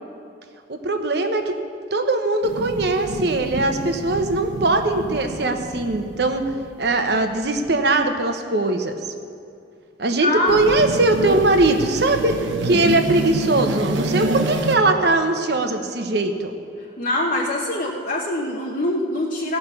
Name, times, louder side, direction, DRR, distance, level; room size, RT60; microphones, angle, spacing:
voice 1, 0.7-1.5 1.9-6.4 6.8-8.9 10.0-16.5, right 2 dB, 60° right, 6 dB, 1.0 m, -20 dB
sound 1, 2.4-7.5 10.5-14.8, right 2 dB, 90° right, 0.9 m, -28 dB
voice 2, 10.2-10.6 17.0-19.6, left 1 dB, 45° left, -3 dB, 1.0 m, -23 dB
16.5 x 5.6 x 6.9 m, 2.5 s
head